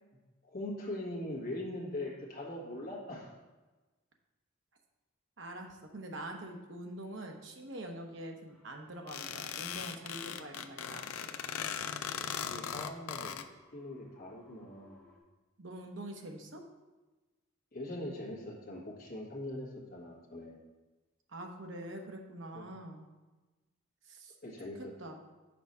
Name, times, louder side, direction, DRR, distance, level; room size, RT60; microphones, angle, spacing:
voice 1, 0.4-3.4 11.7-13.4 13.7-15.1 17.7-20.6 22.5-22.7 24.4-24.9, left 1 dB, 45° left, -4 dB, 1.6 m, -42 dB
voice 2, 5.4-11.1 15.6-16.6 21.3-23.0 24.1-24.3 24.8-25.2, right 1 dB, 60° right, 2 dB, 0.9 m, -45 dB
sound 1, 8.4-15.2, left 1 dB, 10° left, 1.4 m, -63 dB
sound 2, 9.1-13.4, left 8 dB, 90° left, 0.4 m, -39 dB
6.0 x 4.6 x 5.5 m, 1.2 s
head